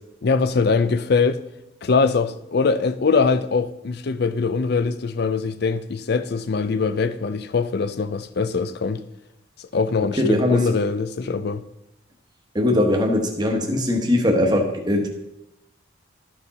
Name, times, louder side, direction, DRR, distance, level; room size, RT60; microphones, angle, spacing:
voice 1, 0.2-1.4 1.8-9.0 9.7-11.6, left 4 dB, 55° left, 0.4 m, -22 dB
voice 2, 10.2-10.6 12.5-15.1, left 1 dB, 20° right, 1.1 m, -20 dB
13.0 x 4.6 x 4.1 m
head